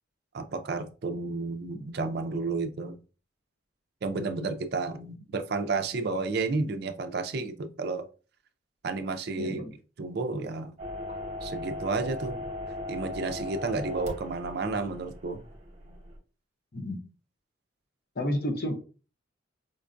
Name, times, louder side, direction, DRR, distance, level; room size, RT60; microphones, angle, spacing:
voice 1, 0.3-3.0 4.0-8.1 8.8-9.6 10.0-10.7 11.4-12.4 12.9-15.4, right 3 dB, 55° right, 7 dB, 0.4 m, -31 dB
voice 2, 9.3-9.7 11.1-11.2 16.7-17.0 18.2-18.7, left 1 dB, 50° left, 4 dB, 0.8 m, -31 dB
sound 1, 10.8-16.2, left 2 dB, 35° right, 0.9 m, -38 dB
5.1 x 2.2 x 2.5 m, 0.35 s
head